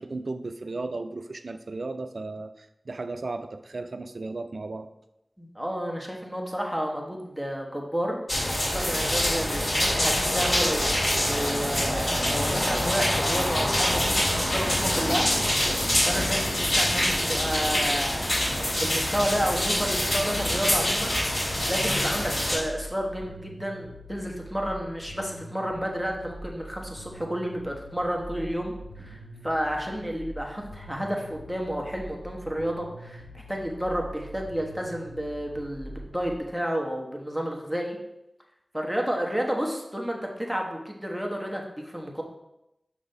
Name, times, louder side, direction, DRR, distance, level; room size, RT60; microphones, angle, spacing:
voice 1, 0.0-4.9, right 3 dB, 70° right, 9 dB, 0.4 m, -35 dB
voice 2, 5.4-8.2 8.7-15.3 16.1-21.2 21.7-38.0 38.7-42.2, equal, ahead, 0 dB, 1.2 m, -31 dB
sound 1, 8.3-22.6, left 1 dB, 50° left, 2.2 m, -25 dB
sound 2, 19.5-36.3, right 1 dB, 75° left, 1.3 m, -44 dB
6.1 x 3.4 x 5.2 m, 0.88 s
wide cardioid pair, 60°, 0 cm